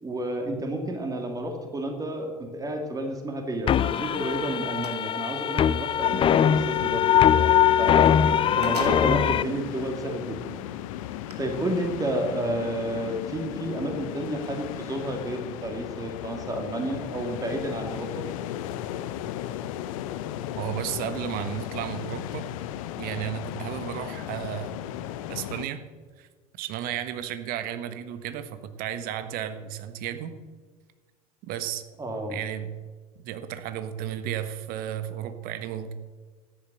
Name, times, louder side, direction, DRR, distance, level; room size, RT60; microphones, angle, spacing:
voice 1, 0.0-8.1 8.5-10.6 11.4-18.3 32.0-32.4, right 1 dB, 20° right, 4 dB, 2.4 m, -31 dB
sound 1, 3.7-9.4, left 9 dB, 25° left, 0.5 m, -21 dB
sound 2, 4.2-5.0 7.9-8.0 8.3-9.4 10.1-10.2 11.1-11.3, right 2 dB, 90° right, 1.6 m, -38 dB
sound 3, 6.0-25.6, left 12 dB, 60° left, 0.8 m, -36 dB
voice 2, 20.6-22.5 23.0-24.8 25.3-25.8 26.2-26.3 26.6-30.4 31.4-31.8 32.3-32.7 33.2-35.9, right 10 dB, 50° right, 11 dB, 1.3 m, -33 dB
13.0 x 10.0 x 6.8 m, 1.5 s
figure-of-eight pair, 70°, 20 cm